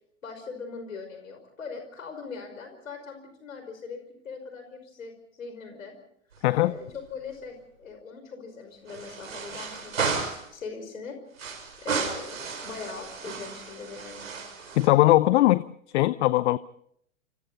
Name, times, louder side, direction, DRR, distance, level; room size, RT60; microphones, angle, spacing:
voice 1, 0.2-5.1 5.4-6.0 6.6-11.2 11.8-14.3, left 5 dB, 80° left, 5.5 m, -40 dB
sound 1, 6.3-7.0 7.3-7.4 8.9-10.5 11.4-14.9, right 5 dB, 85° right, 5.8 m, -34 dB
voice 2, 14.7-15.6 15.9-16.6, left 16 dB, 55° left, 0.8 m, -20 dB
29.0 x 27.5 x 4.1 m
hypercardioid pair, 105°, 40 cm